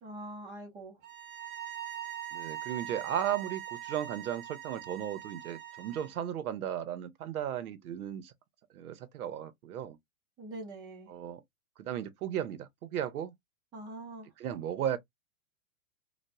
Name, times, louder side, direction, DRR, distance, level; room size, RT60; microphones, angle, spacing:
voice 1, 0.0-1.0 10.4-11.1 13.7-14.3, right 1 dB, 10° right, 0.7 m, -44 dB
sound 1, 1.0-6.2, right 11 dB, 40° right, 0.9 m, -42 dB
voice 2, 2.3-8.3 8.7-10.0 11.1-11.4 11.8-13.3 14.4-15.0, right 10 dB, 90° right, 0.9 m, -35 dB
4.2 x 2.3 x 2.2 m
supercardioid pair, 170°, 43 cm